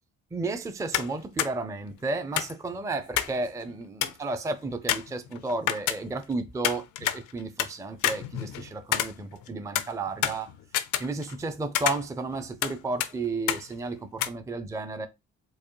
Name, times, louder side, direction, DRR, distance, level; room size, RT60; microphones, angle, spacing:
voice 1, 0.3-10.5 11.0-15.1, right 3 dB, 10° right, 0.4 m, -33 dB
sound 1, 0.9-1.1 1.4-1.5 2.4-3.4 3.7-3.8 4.0-4.3 4.9-6.3 6.6-7.7 8.0-9.5 9.7-11.5 11.7-12.7 13.0-13.1 13.5-13.6 14.2-14.3, left 12 dB, 85° left, 0.5 m, -28 dB
4.6 x 2.4 x 3.0 m
cardioid pair, 90°, 30 cm